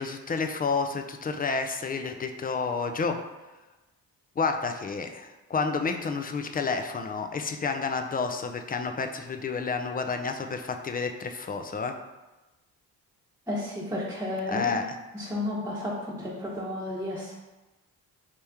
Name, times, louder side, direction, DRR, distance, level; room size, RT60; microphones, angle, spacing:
voice 1, 0.0-3.2 4.4-11.9 14.5-14.8, left 4 dB, 20° left, 6 dB, 0.4 m, -30 dB
voice 2, 13.5-14.8 15.1-17.3, left 1 dB, 5° right, -7 dB, 1.0 m, -32 dB
3.2 x 2.9 x 3.5 m, 1.1 s
supercardioid pair, 55°, 43 cm